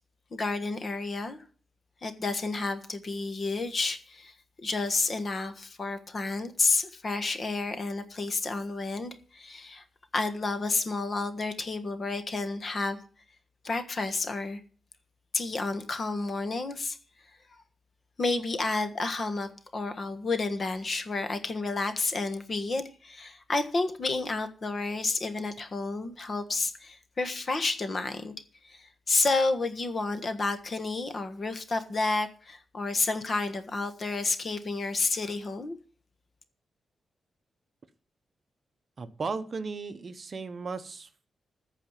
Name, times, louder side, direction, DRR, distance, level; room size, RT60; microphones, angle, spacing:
voice 1, 0.3-1.4 2.0-4.3 4.6-9.8 10.1-13.0 13.6-14.6 15.3-17.0 18.2-28.3 28.6-35.7, left 3 dB, 35° left, 1.4 m, -30 dB
voice 2, 39.0-41.3, right 4 dB, 40° right, 0.8 m, -36 dB
14.5 x 4.9 x 8.9 m
wide cardioid pair, 140°, 0 cm